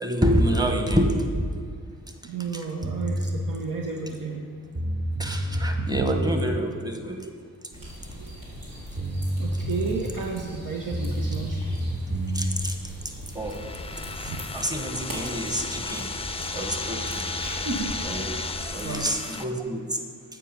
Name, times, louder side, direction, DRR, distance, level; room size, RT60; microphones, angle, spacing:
voice 1, 0.0-1.5 2.5-2.6 5.2-7.3 12.3-12.8 13.3-13.6 14.0-16.2 16.5-17.3 18.0-20.0, equal, 10° right, 4 dB, 1.1 m, -27 dB
voice 2, 2.2-4.4 5.8-6.1 9.4-11.6 14.3-14.4 15.0-15.1 17.4-17.9 18.8-19.1, right 4 dB, 70° right, 0 dB, 0.8 m, -32 dB
sound 1, 2.8-3.4 4.4-4.5 4.7-6.4 8.6-8.7 9.0-10.2 10.9-12.6, right 1 dB, 35° right, 1.1 m, -28 dB
sound 2, 7.7-18.9, equal, 90° right, 1.8 m, -40 dB
sound 3, 13.3-19.4, left 3 dB, 20° left, 0.5 m, -34 dB
7.7 x 4.7 x 5.2 m, 2.1 s
supercardioid pair, 45°, 33 cm